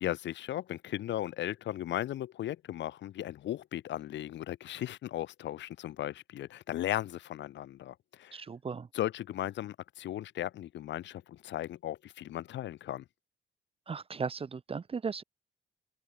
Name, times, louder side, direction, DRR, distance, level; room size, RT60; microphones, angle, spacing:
voice 1, 0.0-8.4 8.9-13.0, left 13 dB, 65° left, 0.6 m, -36 dB
voice 2, 8.3-8.9 13.9-15.2, right 5 dB, 30° right, 0.7 m, -36 dB
cardioid pair, 90°, 20 cm